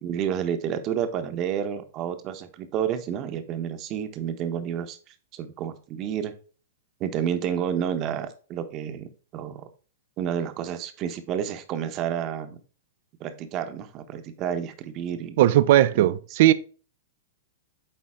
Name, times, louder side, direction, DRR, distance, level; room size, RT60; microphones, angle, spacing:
voice 1, 0.0-5.0 5.3-6.3 7.0-9.6 10.2-12.6 13.2-15.4 16.0-16.1, right 9 dB, 35° right, 1.0 m, -30 dB
voice 2, 15.4-16.5, right 14 dB, 55° right, 0.5 m, -18 dB
8.8 x 3.9 x 3.6 m
hypercardioid pair, 115°, 0 cm